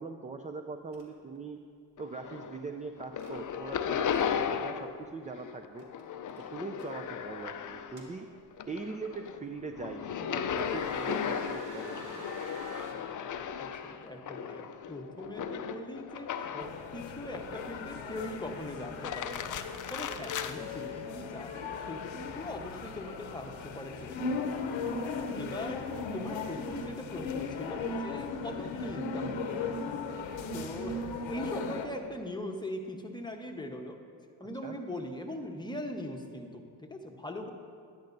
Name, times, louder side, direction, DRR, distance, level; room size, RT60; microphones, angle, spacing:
voice 1, 0.0-1.6 2.0-4.1 4.5-5.9 6.5-8.3 8.7-10.1 10.4-12.2 34.6-34.8, right 4 dB, 15° right, 5 dB, 0.4 m, -41 dB
sound 1, 0.9-1.0 1.3-1.6 3.2-3.3 3.9-4.2 5.8-6.0 6.3-6.9 7.7-8.6 9.3-9.4 10.0-10.2 10.5-12.9, right 2 dB, 50° right, 1.9 m, -48 dB
sound 2, 2.0-2.7 3.0-5.0 5.3-8.1 8.5-16.8 17.3-18.0 18.8-20.5, left 7 dB, 40° left, 0.5 m, -36 dB
voice 2, 13.6-19.5 19.9-24.6 25.4-25.9 26.1-29.8 30.5-34.0 34.4-37.5, left 1 dB, 10° left, 2 dB, 1.0 m, -41 dB
sound 3, 16.6-31.9, left 4 dB, 65° left, 0.9 m, -37 dB
11.5 x 10.5 x 2.6 m, 2.2 s
supercardioid pair, 70°, 48 cm